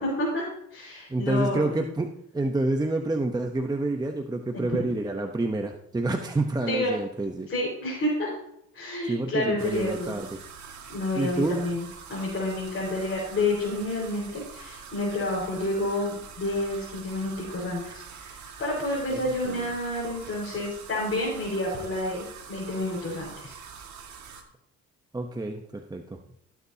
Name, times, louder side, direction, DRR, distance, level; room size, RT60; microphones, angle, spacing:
voice 1, 0.0-1.8 4.5-4.8 6.7-6.9 7.5-8.3 8.7-10.2 10.9-23.5, left 1 dB, 40° left, -6 dB, 4.7 m, -29 dB
voice 2, 1.1-2.1 2.3-7.5 9.1-10.4 11.2-11.6 19.1-19.8 25.1-26.2, right 2 dB, 15° right, 4 dB, 0.8 m, -28 dB
sound 1, 9.6-24.4, right 6 dB, 65° right, 1.8 m, -44 dB
16.0 x 8.4 x 2.8 m, 0.77 s
cardioid pair, 90°, 30 cm